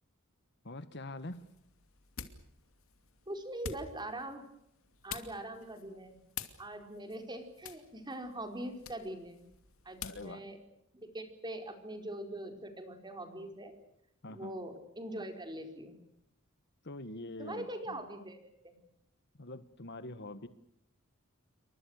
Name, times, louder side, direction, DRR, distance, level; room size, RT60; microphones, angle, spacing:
voice 1, 0.6-1.5 10.0-10.5 14.2-14.6 16.8-18.0 19.4-20.5, left 2 dB, 55° left, 12 dB, 1.7 m, -44 dB
sound 1, 1.2-10.3, left 7 dB, 75° left, 2.6 m, -49 dB
voice 2, 3.3-4.5 5.0-6.2 6.6-9.4 9.8-10.6 11.1-13.7 14.3-16.0 17.4-18.8, right 1 dB, 20° right, 6 dB, 4.8 m, -42 dB
29.0 x 24.0 x 6.6 m, 0.74 s
head